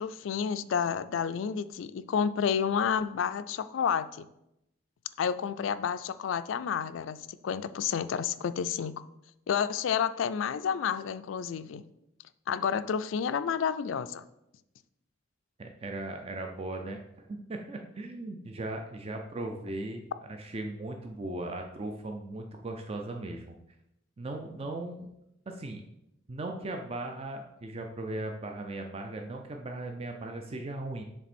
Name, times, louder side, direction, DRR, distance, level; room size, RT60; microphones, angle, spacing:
voice 1, 0.0-4.3 5.2-8.9 9.5-11.8 12.5-14.2, left 7 dB, 75° left, 14 dB, 0.3 m, -30 dB
voice 2, 15.6-23.5 24.2-25.1 25.5-25.8 26.3-31.0, right 2 dB, 30° right, 3 dB, 0.4 m, -38 dB
7.1 x 3.4 x 4.2 m, 0.84 s
head